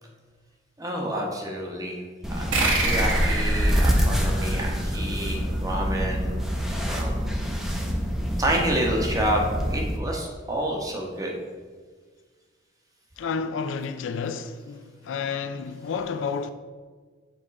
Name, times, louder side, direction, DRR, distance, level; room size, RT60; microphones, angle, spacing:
voice 1, 0.8-2.0 2.3-6.6 6.9-7.5 8.4-11.3, right 1 dB, 20° right, 1.0 m, -29 dB
sound 1, 2.2-10.0, equal, ahead, 0.6 m, -26 dB
sound 2, 2.5-5.6, right 2 dB, 80° right, 1.1 m, -28 dB
voice 2, 13.2-16.5, left 5 dB, 70° left, 0.4 m, -30 dB
7.1 x 3.7 x 4.1 m
head